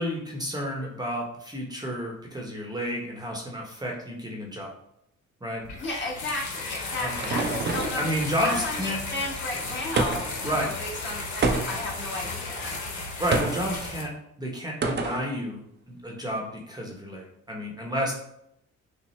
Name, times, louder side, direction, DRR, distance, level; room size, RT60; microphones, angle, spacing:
voice 1, 0.0-4.7 5.4-5.6 7.0-7.3 8.0-9.0 10.4-10.7 13.2-14.1 14.4-18.1, equal, 15° right, -1 dB, 0.8 m, -31 dB
sound 1, 5.6-14.0, left 3 dB, 70° left, 1.0 m, -34 dB
voice 2, 5.8-8.1 8.4-12.8, left 2 dB, 35° left, -3 dB, 1.3 m, -34 dB
sound 2, 6.5-8.1 10.0-10.4 11.4-12.0 13.3-13.7 14.8-15.3, right 3 dB, 35° right, 0.6 m, -27 dB
6.0 x 2.0 x 3.1 m, 0.77 s
cardioid pair, 90°, 30 cm